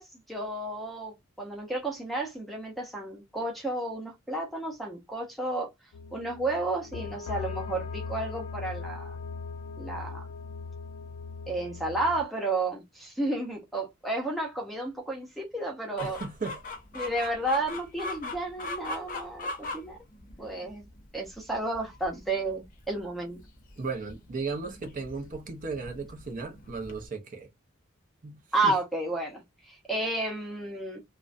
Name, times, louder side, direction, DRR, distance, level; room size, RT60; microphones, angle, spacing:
voice 1, 0.0-5.7 6.1-9.1 9.8-10.3 11.5-16.2 16.9-20.0 20.4-20.8 21.1-23.4 28.5-31.0, right 2 dB, ahead, 0.6 m, -32 dB
sound 1, 5.9-12.3, left 4 dB, 85° left, 0.4 m, -39 dB
Chicken rooster, 16.0-27.1, left 2 dB, 45° left, 0.6 m, -41 dB
voice 2, 16.0-16.6 23.8-27.5 28.2-28.7, right 4 dB, 40° right, 0.5 m, -36 dB
2.4 x 2.1 x 2.4 m
head